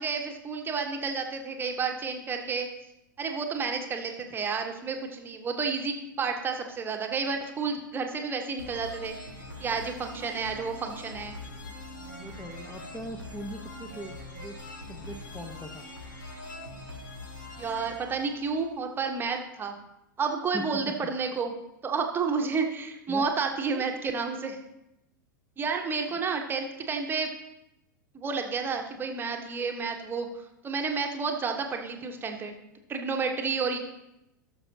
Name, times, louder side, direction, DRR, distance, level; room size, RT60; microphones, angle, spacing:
voice 1, 0.0-2.7 3.2-11.4 17.6-19.8 20.2-21.5 21.8-24.6 25.6-27.3 28.1-32.5 32.9-33.8, right 5 dB, 20° right, 3 dB, 1.2 m, -31 dB
sound 1, 8.6-19.2, left 2 dB, 75° left, 1.9 m, -43 dB
voice 2, 12.2-14.6 14.9-15.8 20.5-20.7 23.1-23.3 23.7-23.8, equal, 5° left, 7 dB, 0.9 m, -40 dB
17.5 x 7.0 x 2.8 m, 0.91 s
figure-of-eight pair, 95°, 11 cm